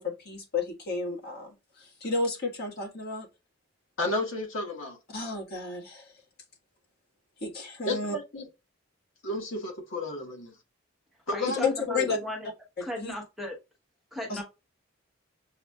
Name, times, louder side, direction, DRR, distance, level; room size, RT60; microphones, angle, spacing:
voice 1, 0.0-3.3 5.1-6.1 7.4-8.1 11.5-12.2 13.0-13.1 14.3-14.4, left 3 dB, 55° left, 1.4 m, -32 dB
voice 2, 4.0-5.0 7.8-8.5 9.2-10.5 11.3-12.1, left 2 dB, 80° left, 1.3 m, -32 dB
voice 3, 11.3-12.5 12.8-13.5 14.1-14.4, equal, ahead, 0.9 m, -36 dB
7.0 x 2.4 x 2.3 m
head